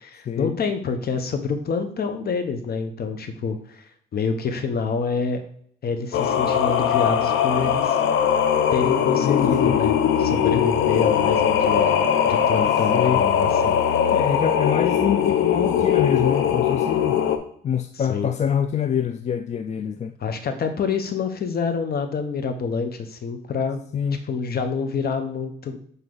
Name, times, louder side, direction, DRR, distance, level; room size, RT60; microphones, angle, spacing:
voice 1, 0.0-5.4 5.8-8.0 8.7-9.9 10.2-13.8 18.1-18.3 20.2-23.8 24.3-25.8, left 5 dB, 50° left, 8 dB, 1.0 m, -27 dB
Singing, 6.1-17.4, left 8 dB, 75° left, 0.7 m, -20 dB
voice 2, 9.2-9.8 10.5-10.7 12.9-13.2 14.1-17.2 17.6-20.2 23.9-24.2, left 8 dB, 35° left, 9 dB, 0.4 m, -25 dB
7.8 x 3.2 x 3.9 m, 0.64 s
cardioid pair, 90°, 20 cm